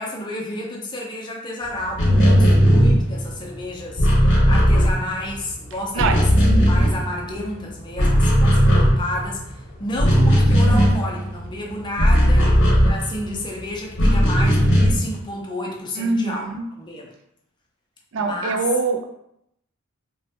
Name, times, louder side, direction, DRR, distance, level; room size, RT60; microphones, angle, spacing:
voice 1, 0.0-16.5 16.8-17.1 18.2-18.6, left 1 dB, 20° left, -1 dB, 0.5 m, -31 dB
sound 1, 1.9-5.5 5.8-7.5 7.8-13.4 13.9-15.2, equal, 55° left, 0.8 m, -17 dB
voice 2, 16.0-16.7 18.1-19.0, right 3 dB, 60° right, 5 dB, 0.3 m, -23 dB
3.0 x 2.1 x 2.7 m, 0.77 s
head